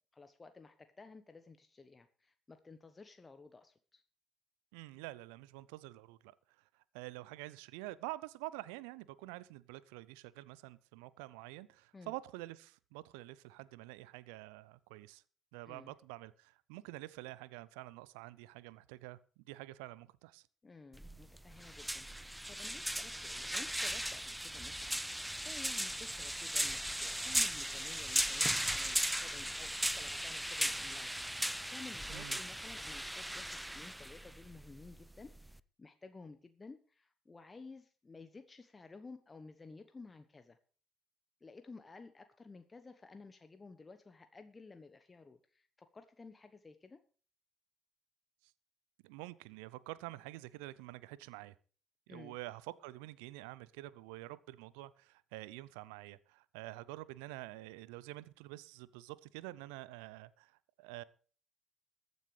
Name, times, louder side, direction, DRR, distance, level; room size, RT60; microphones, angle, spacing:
voice 1, 0.1-4.0 11.9-12.1 15.6-15.9 20.6-40.6 41.4-47.0 52.1-52.3, left 3 dB, 30° left, 1.1 m, -54 dB
voice 2, 4.7-6.3 6.9-15.2 15.5-20.4 32.1-32.4 49.0-51.5 52.1-61.0, right 18 dB, 75° right, 0.6 m, -48 dB
sound 1, 20.9-35.6, equal, 5° right, 0.6 m, -37 dB
22.0 x 9.4 x 3.3 m
figure-of-eight pair, 50°, 0 cm